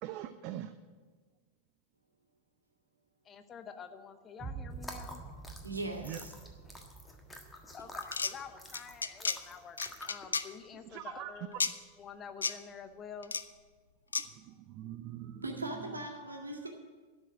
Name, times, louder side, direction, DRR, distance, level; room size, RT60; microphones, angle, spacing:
voice 1, 0.0-0.7 6.0-6.2 10.8-11.3 14.2-15.5 15.7-15.9, right 12 dB, 40° right, 10 dB, 0.5 m, -43 dB
voice 2, 3.2-5.2 7.7-11.6 12.0-13.3, left 6 dB, 25° left, 9 dB, 0.8 m, -48 dB
sound 1, 4.4-10.4, right 4 dB, 15° right, 3.5 m, -49 dB
sound 2, 4.7-10.3, left 2 dB, 10° left, 1.4 m, -48 dB
voice 3, 5.6-6.3 15.4-16.7, right 2 dB, 80° right, 1 dB, 1.8 m, -39 dB
sound 3, 8.0-8.3 8.7-9.4 9.8-10.4 11.6-11.7 12.4-12.5 13.2-13.4 14.1-14.2, left 5 dB, 75° left, 0.5 m, -32 dB
12.0 x 6.3 x 8.7 m, 1.4 s
figure-of-eight pair, 90°, 0 cm